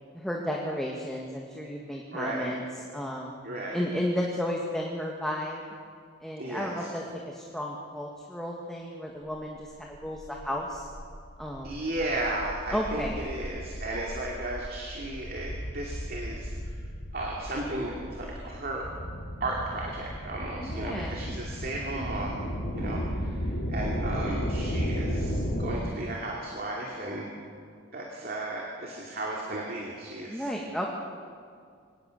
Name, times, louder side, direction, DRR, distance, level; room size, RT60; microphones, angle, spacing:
voice 1, 0.1-2.6 2.9-3.3 3.7-5.6 6.2-10.9 11.4-11.8 12.7-13.2 20.6-21.2 22.8-23.2 30.3-30.9, equal, ahead, -2 dB, 1.7 m, -33 dB
voice 2, 2.1-2.5 3.4-3.8 6.4-6.9 11.6-16.8 17.1-18.9 19.4-22.5 22.7-27.3 27.9-30.5, right 2 dB, 45° right, -2 dB, 2.6 m, -35 dB
sound 1, 9.7-25.8, equal, 75° left, 4.2 m, -35 dB
24.0 x 18.5 x 6.6 m, 2.2 s
head